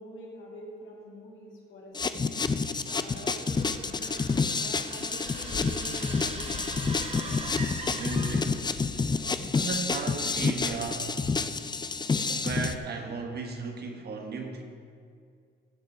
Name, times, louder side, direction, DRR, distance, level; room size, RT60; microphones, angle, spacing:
voice 1, 0.0-2.4 3.0-4.3 4.5-6.7, equal, 75° left, -2 dB, 2.6 m, -45 dB
sound 1, 1.9-12.8, left 4 dB, 20° left, 0.5 m, -29 dB
sound 2, 2.9-8.8, right 3 dB, 30° right, 1.1 m, -42 dB
sound 3, 3.6-10.9, left 5 dB, 55° left, 1.0 m, -45 dB
voice 2, 7.8-8.7 9.5-11.1 12.3-14.6, right 4 dB, 55° right, 3 dB, 1.4 m, -35 dB
15.0 x 7.6 x 4.4 m, 2.3 s
cardioid pair, 90°, 20 cm